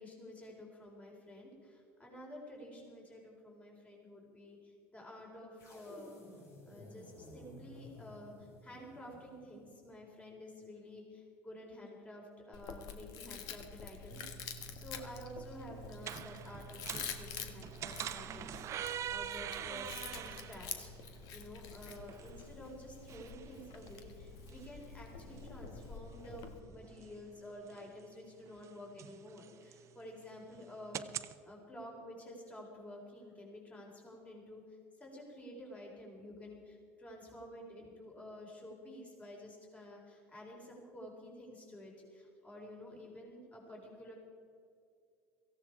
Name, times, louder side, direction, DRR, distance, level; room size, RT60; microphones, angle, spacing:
voice 1, 0.0-6.2 6.7-44.1, left 1 dB, 20° left, -1 dB, 4.5 m, -51 dB
sound 1, 5.6-9.9, left 1 dB, 45° left, 4.9 m, -55 dB
Chewing mastication, 12.5-26.6, left 7 dB, 65° left, 1.5 m, -48 dB
sound 2, 14.1-31.3, right 10 dB, 45° right, 0.7 m, -46 dB
17.5 x 15.0 x 4.8 m, 2.4 s
supercardioid pair, 90°, 7 cm